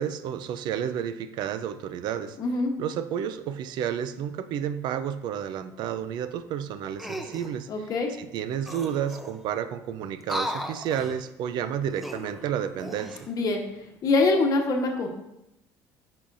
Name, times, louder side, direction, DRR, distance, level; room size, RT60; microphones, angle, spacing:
voice 1, 0.0-2.4 2.8-7.7 8.2-13.3, right 9 dB, 60° right, 12 dB, 0.4 m, -31 dB
voice 2, 2.4-2.7 7.7-8.1 13.3-13.6 14.0-15.1, left 3 dB, 45° left, 3 dB, 1.1 m, -24 dB
sound 1, 7.0-7.5 8.4-8.5 8.6-9.5 10.2-11.2 11.9-13.3 13.8-14.0, equal, ahead, 0.5 m, -36 dB
8.5 x 5.6 x 2.6 m, 0.86 s
cardioid pair, 130°, 8 cm